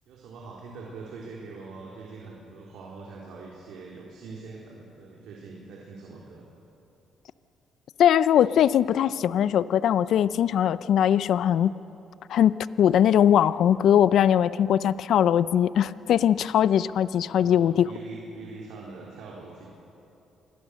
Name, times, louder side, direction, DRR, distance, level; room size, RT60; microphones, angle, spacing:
voice 1, 0.1-6.5 17.3-19.7, right 4 dB, 80° right, -3 dB, 3.6 m, -43 dB
voice 2, 8.0-11.7 12.3-17.9, left 10 dB, 75° left, 16 dB, 0.5 m, -21 dB
28.5 x 21.0 x 6.4 m, 2.9 s
cardioid pair, 90°, 0 cm